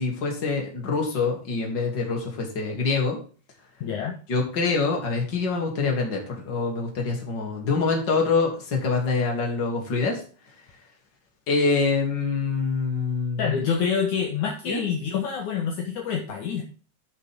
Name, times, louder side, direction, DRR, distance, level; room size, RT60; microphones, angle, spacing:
voice 1, 0.0-3.2 4.3-10.2 11.5-13.5 14.7-14.8, left 4 dB, 30° left, 1 dB, 2.6 m, -25 dB
voice 2, 3.8-4.1 13.4-16.6, left 7 dB, 65° left, 1 dB, 1.9 m, -27 dB
12.5 x 6.5 x 3.7 m, 0.38 s
omnidirectional pair, 5.3 m